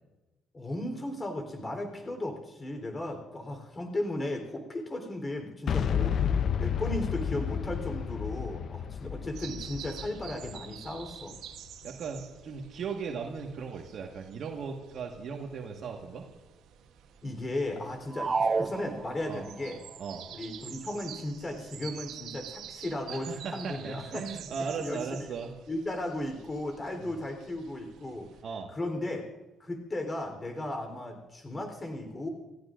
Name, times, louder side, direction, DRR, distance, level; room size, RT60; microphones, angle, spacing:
voice 1, 0.5-6.2 6.6-11.4 17.2-19.8 20.3-24.4 24.8-25.3 25.7-28.3 28.7-29.2 29.6-32.3, left 1 dB, 25° left, 4 dB, 3.7 m, -35 dB
Boom, 5.7-11.5, left 8 dB, 60° left, 0.6 m, -31 dB
sound 1, 9.3-28.4, right 9 dB, 85° right, 1.1 m, -48 dB
voice 2, 11.8-16.2 19.3-19.4 20.0-20.2 23.1-25.5 27.0-27.2 28.4-28.7, right 5 dB, 65° right, 1 dB, 1.6 m, -37 dB
sound 2, 18.1-19.6, right 4 dB, 35° right, 0.5 m, -30 dB
29.0 x 15.0 x 2.6 m, 1.1 s
cardioid pair, 90°, 0 cm